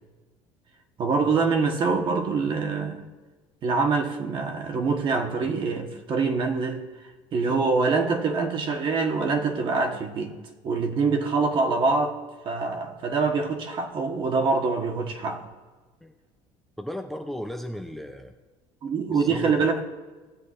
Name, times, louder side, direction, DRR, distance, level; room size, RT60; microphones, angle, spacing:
voice 1, 1.0-3.1 3.6-6.8 7.3-10.3 10.6-12.2 12.4-15.5 18.8-19.8, right 4 dB, 45° right, 4 dB, 1.4 m, -25 dB
voice 2, 16.8-18.4 19.1-19.8, equal, ahead, 5 dB, 0.5 m, -35 dB
18.0 x 7.9 x 2.6 m, 1.3 s
cardioid pair, 130°, 12 cm